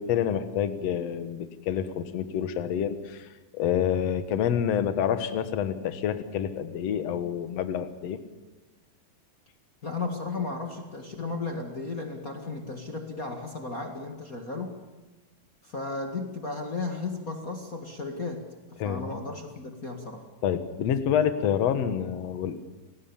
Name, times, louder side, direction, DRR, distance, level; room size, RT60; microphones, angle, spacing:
voice 1, 0.0-8.2 18.8-19.1 20.4-22.6, left 9 dB, 60° left, 10 dB, 2.3 m, -28 dB
voice 2, 9.8-14.8 15.6-18.5 18.8-20.2, left 3 dB, 30° left, 3 dB, 2.0 m, -34 dB
29.0 x 19.0 x 7.2 m, 1.1 s
omnidirectional pair, 3.7 m